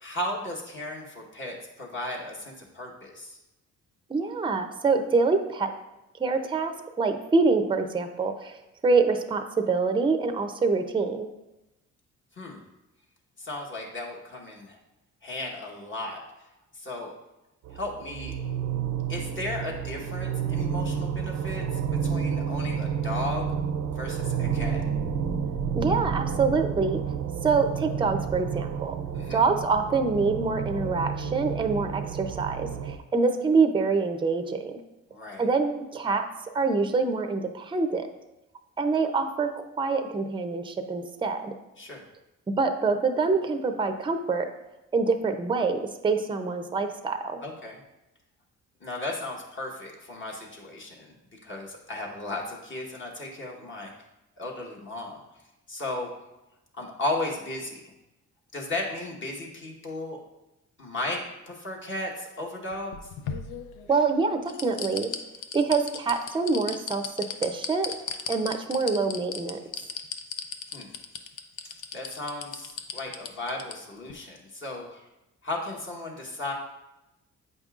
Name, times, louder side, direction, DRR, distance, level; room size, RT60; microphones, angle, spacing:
voice 1, 0.0-3.4 12.3-12.6 13.4-14.8 15.2-16.2 16.7-17.1 17.7-18.3 19.1-23.5 23.8-24.8 29.1-29.4 35.1-35.5 41.8-42.0 47.4-47.8 48.8-53.9 54.4-55.2 55.7-56.1 56.7-57.9 58.5-60.2 60.8-62.9 70.7-70.9 71.9-75.1 75.4-76.5, left 2 dB, 40° left, -1 dB, 1.2 m, -35 dB
voice 2, 4.1-5.7 6.2-8.6 8.8-11.3 25.7-27.0 27.4-28.9 29.3-34.8 35.4-36.2 36.5-38.1 38.8-41.5 42.6-44.5 44.9-47.4 63.9-65.1 65.5-67.1 67.4-67.9 68.3-69.6, right 4 dB, 15° right, 7 dB, 0.5 m, -25 dB
sound 1, 17.6-33.0, right 7 dB, 70° right, 0.6 m, -30 dB
sound 2, 62.7-64.0 64.5-73.7 74.1-74.2, left 7 dB, 90° left, 0.6 m, -35 dB
8.1 x 5.2 x 2.4 m, 0.96 s
cardioid pair, 90°, 30 cm